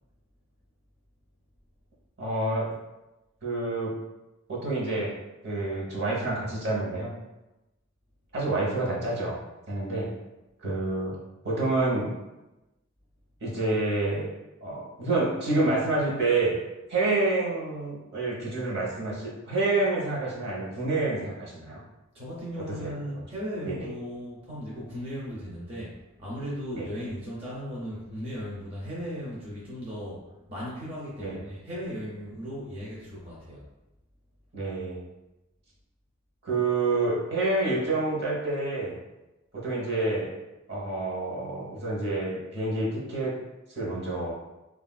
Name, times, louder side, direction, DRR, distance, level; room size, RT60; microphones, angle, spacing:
voice 1, 2.2-2.7 3.4-3.9 4.5-5.2 5.4-7.1 8.3-9.4 9.7-10.1 10.6-11.2 11.4-12.1 13.4-14.3 14.6-16.6 16.9-21.8 22.8-23.2 23.6-23.9 26.7-26.9 31.2-31.4 34.5-35.0 36.4-39.0 39.5-40.3 40.7-43.3 43.7-44.3, right 2 dB, 55° right, -4 dB, 0.9 m, -28 dB
voice 2, 22.1-33.6, equal, 30° right, -7 dB, 0.6 m, -37 dB
3.5 x 2.4 x 2.3 m, 1.0 s
head